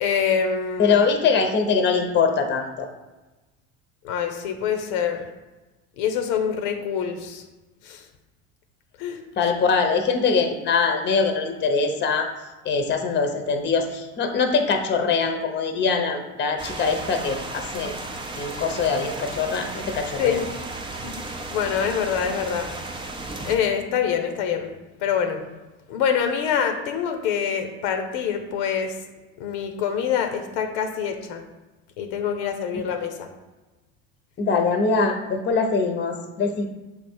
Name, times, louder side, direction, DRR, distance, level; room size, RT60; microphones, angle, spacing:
voice 1, 0.0-0.9 4.0-5.3 6.0-7.4 7.9-8.0 9.0-9.2 20.2-20.4 21.0-21.2 21.5-22.7 23.5-24.7 25.0-25.4 25.9-29.0 29.4-31.4 32.0-33.3, left 7 dB, 80° left, 6 dB, 0.9 m, -25 dB
voice 2, 0.8-2.9 9.4-12.3 12.6-17.9 18.4-20.4 34.4-36.7, left 5 dB, 30° left, 5 dB, 0.8 m, -23 dB
sound 1, 16.6-23.6, right 2 dB, 15° right, 0.6 m, -34 dB
7.1 x 3.5 x 4.4 m, 1.1 s
supercardioid pair, 120°, 34 cm